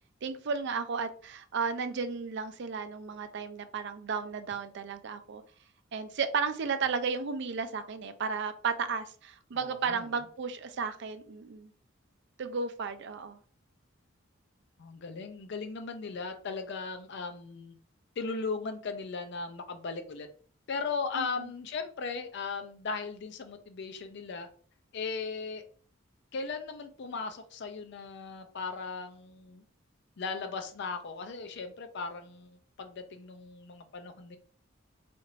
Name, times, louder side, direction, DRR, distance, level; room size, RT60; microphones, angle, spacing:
voice 1, 0.2-5.4 5.9-11.7 12.4-13.4 21.1-21.5, right 5 dB, 60° right, 10 dB, 0.4 m, -34 dB
voice 2, 9.5-10.0 14.8-17.8 18.2-20.3 20.7-24.5 24.9-25.6 26.3-29.6 30.2-34.4, left 4 dB, 60° left, 7 dB, 0.4 m, -37 dB
4.2 x 2.5 x 3.1 m, 0.44 s
head